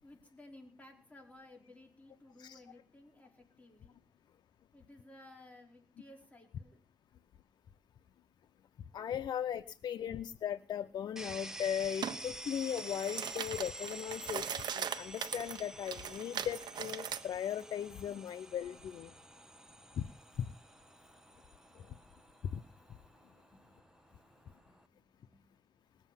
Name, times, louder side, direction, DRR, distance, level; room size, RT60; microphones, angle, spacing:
voice 1, 0.0-4.0 4.7-6.8 23.5-23.8 24.4-25.8, left 1 dB, 20° left, 1 dB, 5.1 m, -57 dB
voice 2, 8.9-14.4 14.7-19.1 22.5-22.6, left 9 dB, 85° left, 9 dB, 0.6 m, -38 dB
sound 1, 11.2-24.9, right 1 dB, 10° right, 1.3 m, -49 dB
sound 2, 12.0-12.2 12.6-17.2, right 8 dB, 80° right, 1.0 m, -40 dB
19.5 x 7.8 x 7.2 m, 0.41 s
cardioid pair, 80°, 7 cm